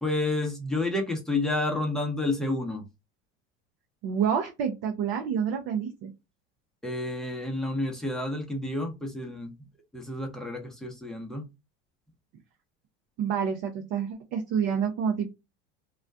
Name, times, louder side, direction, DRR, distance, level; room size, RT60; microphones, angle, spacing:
voice 1, 0.0-2.8 6.8-9.5 9.9-11.5, left 2 dB, ahead, 0.7 m, -30 dB
voice 2, 4.0-6.1 13.2-15.3, right 7 dB, 50° right, 0.6 m, -28 dB
2.3 x 2.1 x 2.5 m
hypercardioid pair, 95°, 34 cm